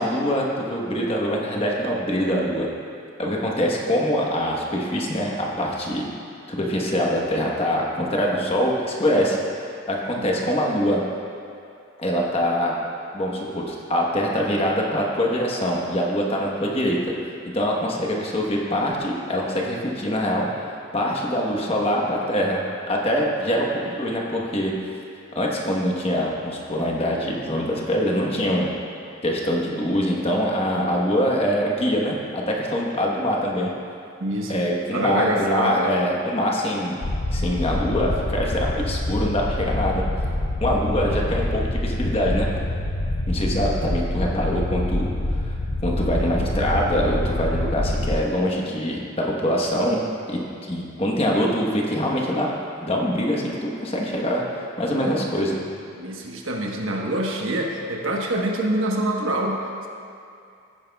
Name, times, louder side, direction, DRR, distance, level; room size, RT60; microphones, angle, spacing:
voice 1, 0.0-2.7 3.2-6.1 6.5-11.0 12.0-12.7 13.1-17.1 17.4-22.6 22.9-24.7 25.3-28.7 29.2-33.7 34.5-37.0 37.3-40.0 40.6-42.5 43.3-45.5 45.8-50.0 50.3-50.4 50.7-52.5 52.8-55.5, equal, 30° left, -2 dB, 1.1 m, -24 dB
voice 2, 34.2-34.5 34.9-35.9 54.9-55.5 55.9-59.9, right 1 dB, 75° right, 0 dB, 1.1 m, -26 dB
sound 1, 37.0-48.2, left 1 dB, 55° left, 0.7 m, -26 dB
15.0 x 9.2 x 2.3 m, 2.5 s
head